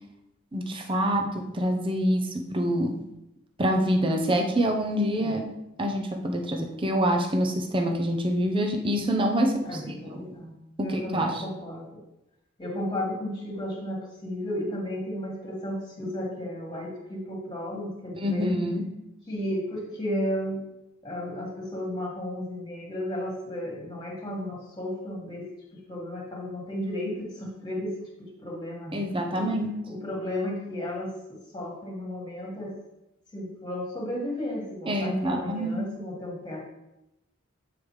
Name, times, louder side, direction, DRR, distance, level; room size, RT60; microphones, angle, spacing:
voice 1, 0.5-3.0 3.6-5.5 5.8-10.2 10.8-11.4 18.2-18.9 28.9-29.7 34.9-35.8, equal, 25° right, 3 dB, 0.7 m, -26 dB
voice 2, 9.7-10.5 10.8-12.0 12.6-18.5 19.3-20.6 21.0-27.9 28.2-29.0 29.3-29.4 29.9-32.7 33.3-36.6, left 1 dB, 20° left, -2 dB, 1.8 m, -34 dB
8.9 x 5.0 x 3.2 m, 0.90 s
head